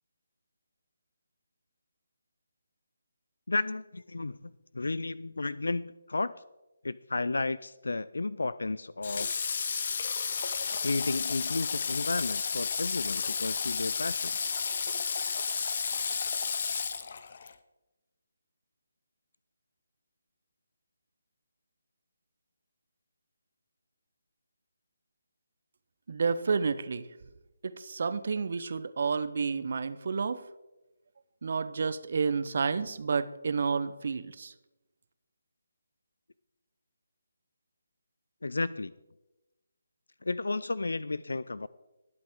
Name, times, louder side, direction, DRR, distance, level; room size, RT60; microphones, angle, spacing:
voice 1, 3.5-6.3 6.8-9.4 10.8-14.6 38.4-38.9 40.2-41.7, left 3 dB, 70° left, 18 dB, 0.3 m, -33 dB
Water / Water tap faucet, 9.0-17.5, left 5 dB, 45° left, 0.7 m, -32 dB
voice 2, 26.1-27.1 27.6-30.4 31.4-34.5, right 5 dB, 50° right, 15 dB, 0.7 m, -30 dB
20.0 x 7.6 x 3.6 m, 1.1 s
figure-of-eight pair, 150°, 0 cm